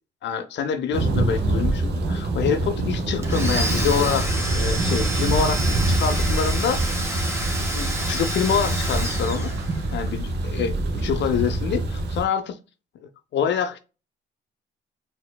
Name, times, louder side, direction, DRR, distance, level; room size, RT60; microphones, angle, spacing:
voice 1, 0.2-7.0 7.7-9.5 9.9-12.6 13.3-13.8, left 7 dB, 65° left, 0.5 m, -26 dB
Thunder, 0.9-12.2, right 2 dB, 60° right, 0.8 m, -25 dB
Domestic sounds home sounds, 3.2-10.0, right 1 dB, 15° right, 1.1 m, -30 dB
4.3 x 2.7 x 2.2 m
cardioid pair, 90°, 20 cm